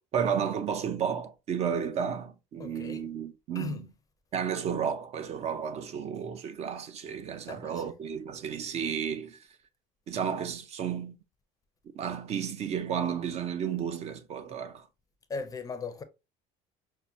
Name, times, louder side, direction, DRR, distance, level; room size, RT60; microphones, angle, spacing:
voice 1, 0.1-3.9 4.3-9.4 10.1-11.2 11.9-14.9, right 7 dB, 40° right, 0.5 m, -32 dB
voice 2, 2.6-3.1 3.5-3.8 7.5-7.9 15.3-16.0, left 4 dB, 20° left, 0.5 m, -38 dB
5.8 x 2.1 x 2.6 m
cardioid pair, 135°, 16 cm